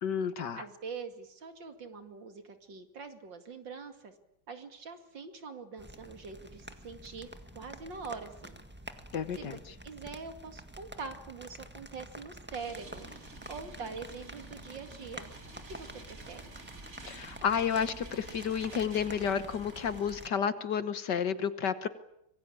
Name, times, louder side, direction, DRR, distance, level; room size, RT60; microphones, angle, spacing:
voice 1, 0.0-0.6 9.1-9.6 17.1-21.9, left 7 dB, 60° left, 12 dB, 1.8 m, -31 dB
voice 2, 0.6-4.1 4.5-7.3 7.5-8.6 9.4-9.6 9.8-13.1 13.5-15.3 15.6-16.4, right 5 dB, 60° right, 7 dB, 3.0 m, -44 dB
sound 1, 5.8-20.3, right 1 dB, 5° right, 1.4 m, -48 dB
sound 2, 12.5-20.3, right 3 dB, 35° right, 2.7 m, -50 dB
26.0 x 22.5 x 8.6 m, 0.77 s
omnidirectional pair, 2.2 m